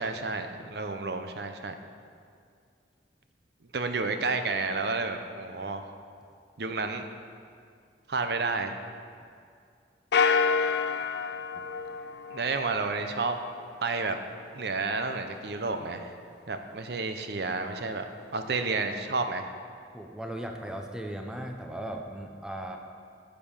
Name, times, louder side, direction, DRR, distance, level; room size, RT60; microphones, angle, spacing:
voice 1, 0.0-1.7 3.7-5.9 6.6-7.1 8.1-8.8 12.3-13.4 13.8-14.2 14.5-16.1 16.5-18.0 18.3-19.5, right 3 dB, 60° right, 7 dB, 0.7 m, -30 dB
sound 1, 10.1-12.8, left 5 dB, 60° left, 0.4 m, -27 dB
voice 2, 19.9-22.8, right 1 dB, 5° right, 3 dB, 0.6 m, -37 dB
10.5 x 6.8 x 5.6 m, 2.3 s
head